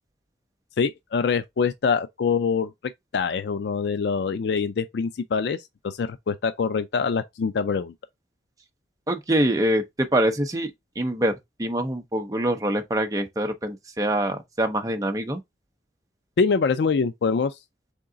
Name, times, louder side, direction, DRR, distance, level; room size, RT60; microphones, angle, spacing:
voice 1, 0.8-2.7 3.1-5.6 5.8-7.9 16.4-17.6, left 5 dB, 75° left, 0.4 m, -24 dB
voice 2, 9.1-10.7 11.0-11.3 11.6-15.4, right 1 dB, 20° right, 0.7 m, -24 dB
3.8 x 3.7 x 3.7 m
head